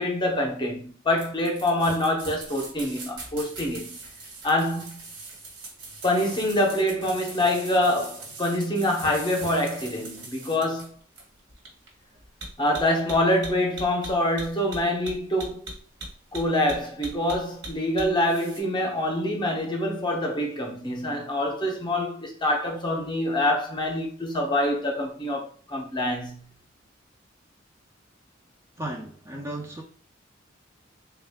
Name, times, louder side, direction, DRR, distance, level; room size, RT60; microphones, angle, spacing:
voice 1, 0.0-4.0 4.4-5.0 6.0-10.9 12.6-15.7 16.3-26.4, left 1 dB, 25° left, 0.8 m, -25 dB
sound 1, 1.2-18.6, right 2 dB, 65° right, 1.3 m, -40 dB
voice 2, 28.8-29.8, right 1 dB, 15° right, 0.5 m, -35 dB
3.6 x 2.3 x 3.5 m
head